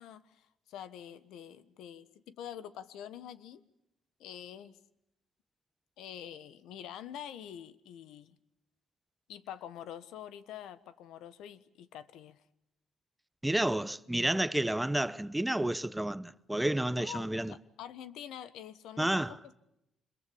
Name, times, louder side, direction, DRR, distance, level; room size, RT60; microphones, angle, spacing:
voice 1, 0.0-3.6 4.2-4.8 6.0-8.4 9.3-12.4 16.9-19.5, left 10 dB, 85° left, 1.3 m, -46 dB
voice 2, 13.4-17.5 19.0-19.3, right 1 dB, 5° right, 0.9 m, -30 dB
26.0 x 22.0 x 8.6 m
cardioid pair, 90°, 0 cm